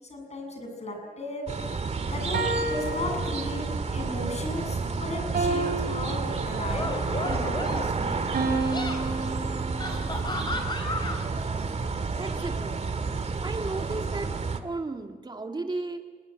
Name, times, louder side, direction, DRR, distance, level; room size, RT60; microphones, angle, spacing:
voice 1, 0.0-1.5 2.0-3.6 3.9-8.3, left 2 dB, 45° left, 4 dB, 7.6 m, -36 dB
sound 1, 1.5-14.6, right 4 dB, 45° right, 2.0 m, -30 dB
sound 2, 2.3-3.9 5.3-7.0 8.3-10.2, right 3 dB, 75° right, 5.0 m, -31 dB
sound 3, 5.6-5.9 6.6-8.0 8.5-9.0 9.8-11.2, left 2 dB, 30° left, 5.3 m, -34 dB
voice 2, 12.2-12.8 13.4-14.3 14.6-16.0, right 3 dB, 30° right, 3 dB, 2.6 m, -34 dB
27.0 x 20.5 x 9.1 m, 1.4 s
wide cardioid pair, 115°, 15 cm